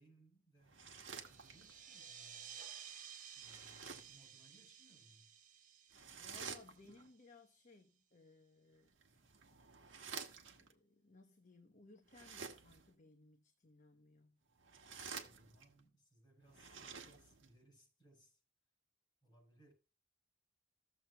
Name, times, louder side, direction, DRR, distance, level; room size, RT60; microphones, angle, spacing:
voice 1, 0.0-2.6 3.3-5.3 15.2-18.4 19.2-19.7, right 1 dB, 25° left, 5.1 m, -67 dB
sound 1, 0.6-1.9 3.4-4.2 5.9-7.1 8.9-10.7 12.1-12.9 14.5-15.8 16.4-17.5, right 6 dB, 65° right, 1.3 m, -51 dB
sound 2, 1.1-7.3, right 8 dB, 40° right, 1.0 m, -55 dB
voice 2, 6.1-8.9 10.6-14.4, left 2 dB, 40° left, 1.0 m, -63 dB
15.0 x 7.3 x 2.3 m
head